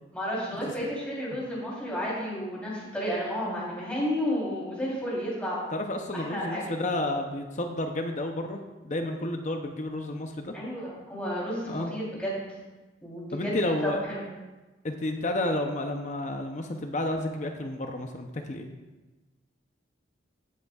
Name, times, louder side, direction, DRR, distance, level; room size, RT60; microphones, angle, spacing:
voice 1, 0.1-5.6 6.1-6.6 10.5-12.6 13.0-14.2, equal, 5° left, -6 dB, 3.4 m, -32 dB
voice 2, 5.7-10.5 11.7-11.9 13.3-14.0 14.8-18.7, left 1 dB, 40° left, 4 dB, 0.7 m, -31 dB
16.5 x 8.0 x 2.4 m, 1.2 s
head